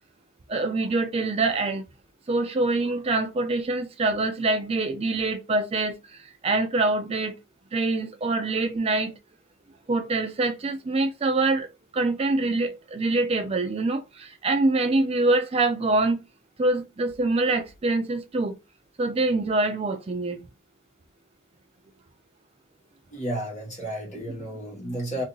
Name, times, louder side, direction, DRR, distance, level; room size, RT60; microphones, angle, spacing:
voice 1, 0.5-1.8 2.3-6.0 6.4-7.4 7.7-9.1 9.9-11.7 11.9-16.2 16.6-18.6 19.0-20.5, right 2 dB, 30° right, 0.4 m, -25 dB
voice 2, 23.1-25.2, right 1 dB, 35° left, 1.3 m, -32 dB
2.7 x 2.6 x 3.7 m
head